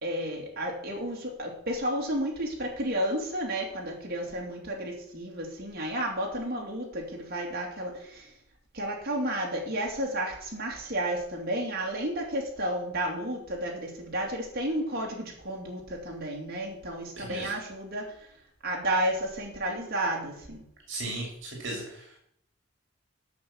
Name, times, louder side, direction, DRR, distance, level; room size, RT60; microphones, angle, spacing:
voice 1, 0.0-8.3 8.7-18.3 18.6-20.6, right 1 dB, 55° right, -1 dB, 2.6 m, -32 dB
voice 2, 17.2-17.5 20.9-22.2, right 2 dB, 75° right, -1 dB, 2.6 m, -36 dB
8.5 x 6.4 x 7.2 m, 0.71 s
head